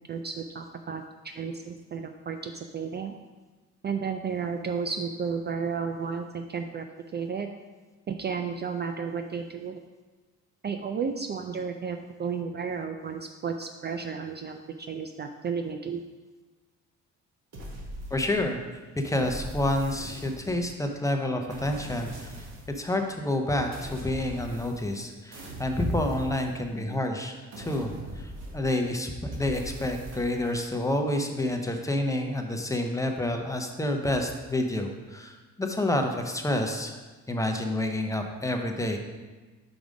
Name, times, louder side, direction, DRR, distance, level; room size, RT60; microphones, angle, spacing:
voice 1, 0.1-3.1 3.8-6.8 7.1-7.5 8.1-9.8 10.6-16.0, right 6 dB, 35° right, 6 dB, 0.4 m, -33 dB
sound 1, 17.5-18.6 19.2-20.8 21.5-22.8 23.7-25.0 25.3-26.9 27.5-28.9 29.3-30.6, right 1 dB, 60° right, 1.5 m, -41 dB
voice 2, 18.1-18.6 19.0-22.5 22.7-37.0 37.3-39.0, left 1 dB, 10° left, 3 dB, 0.7 m, -29 dB
5.2 x 4.7 x 5.1 m, 1.3 s
cardioid pair, 90°, 30 cm